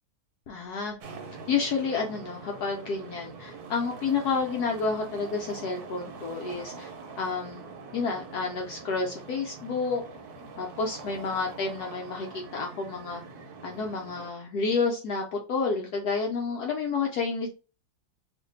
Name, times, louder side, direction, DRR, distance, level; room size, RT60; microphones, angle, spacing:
voice 1, 0.5-0.9 1.5-6.9 7.2-7.7 7.9-10.0 10.6-13.2 13.6-17.5, left 4 dB, 70° left, 1 dB, 1.0 m, -30 dB
sound 1, 1.0-14.3, right 4 dB, 65° right, 1.1 m, -44 dB
2.8 x 2.6 x 3.9 m, 0.32 s
omnidirectional pair, 2.1 m